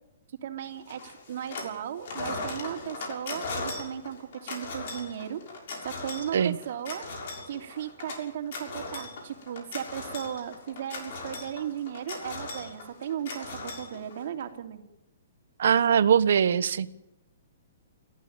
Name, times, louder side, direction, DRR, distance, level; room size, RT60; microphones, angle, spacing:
voice 1, 0.4-5.4 5.8-7.0 7.5-14.8, right 9 dB, 50° right, 3.2 m, -36 dB
sound 1, 0.9-1.8 2.0-14.4, left 3 dB, 50° left, 6.6 m, -38 dB
voice 2, 15.6-16.9, right 8 dB, 70° right, 1.2 m, -22 dB
29.0 x 15.0 x 9.0 m
hypercardioid pair, 160°, 0 cm